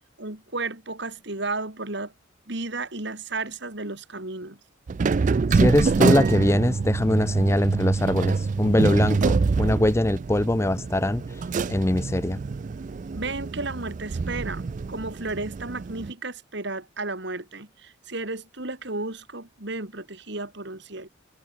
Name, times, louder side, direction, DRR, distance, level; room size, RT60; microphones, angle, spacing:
voice 1, 0.2-2.1 2.5-4.6 13.1-21.1, right 3 dB, 55° right, 2.8 m, -33 dB
sound 1, 4.9-16.1, right 4 dB, 35° right, 0.3 m, -25 dB
voice 2, 5.5-11.2 11.7-12.4, left 1 dB, 15° left, 0.5 m, -22 dB
head